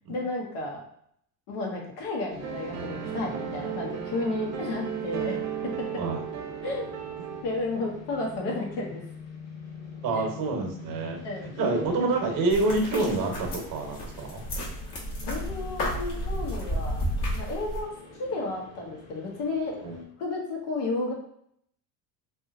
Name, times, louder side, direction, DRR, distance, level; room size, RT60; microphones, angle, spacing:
voice 1, 0.1-0.8 1.5-5.4 6.6-6.8 7.4-9.0 10.1-10.2 11.2-11.8 15.3-17.0 17.3-19.8 20.2-21.1, left 2 dB, 80° left, -1 dB, 1.1 m, -32 dB
sound 1, 2.3-20.1, left 4 dB, 35° left, 0.9 m, -45 dB
sound 2, 2.4-7.4, right 9 dB, 80° right, 0.7 m, -35 dB
voice 2, 10.0-11.2 11.6-14.4 19.8-20.0, right 3 dB, 45° right, 3 dB, 0.9 m, -27 dB
sound 3, 12.5-17.8, equal, 60° left, 1.2 m, -32 dB
2.8 x 2.6 x 2.5 m, 0.69 s
supercardioid pair, 100°, 45 cm